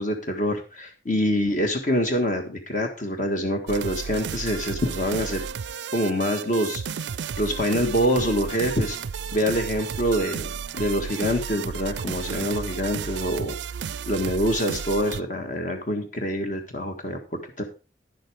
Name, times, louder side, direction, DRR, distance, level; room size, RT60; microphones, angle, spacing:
voice 1, 0.0-5.4 5.9-6.8 7.4-9.0 9.3-13.5 14.1-17.6, equal, 45° left, 4 dB, 1.5 m, -25 dB
sound 1, 3.7-15.2, right 6 dB, 65° right, 0.4 m, -33 dB
10.0 x 7.8 x 4.9 m, 0.33 s
head